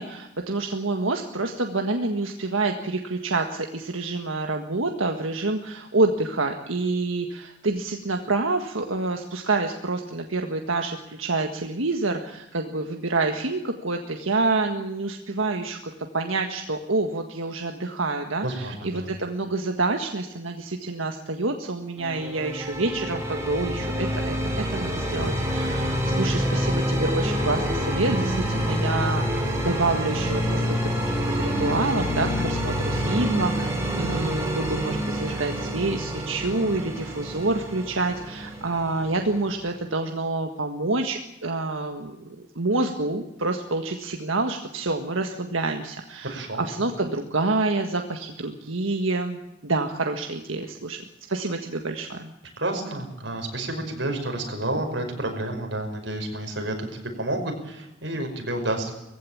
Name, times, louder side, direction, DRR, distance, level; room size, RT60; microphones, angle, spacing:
voice 1, 0.0-30.8 31.1-51.0 51.3-52.3, right 3 dB, 90° right, 4 dB, 1.7 m, -27 dB
voice 2, 18.4-19.1 46.3-46.7 52.6-58.9, right 1 dB, 65° right, 3 dB, 5.5 m, -30 dB
sound 1, 22.0-39.7, equal, 15° right, 5.4 m, -27 dB
20.5 x 16.0 x 8.6 m, 0.90 s
head